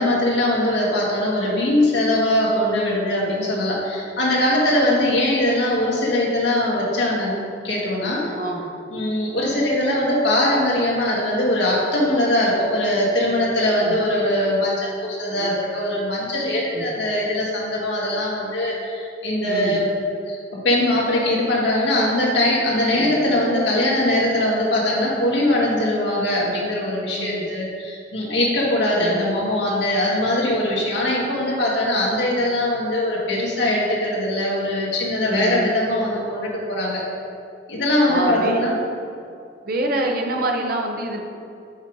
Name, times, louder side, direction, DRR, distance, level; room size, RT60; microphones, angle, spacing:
voice 1, 0.0-8.3 8.9-19.9 20.3-37.0 37.7-38.7, left 1 dB, 70° left, -4 dB, 1.5 m, -21 dB
voice 2, 19.5-19.8 23.0-23.2 27.2-27.5 29.0-29.2 35.3-35.7 38.1-38.6 39.6-41.3, right 1 dB, 55° right, 3 dB, 0.7 m, -26 dB
5.6 x 5.1 x 4.6 m, 2.4 s
head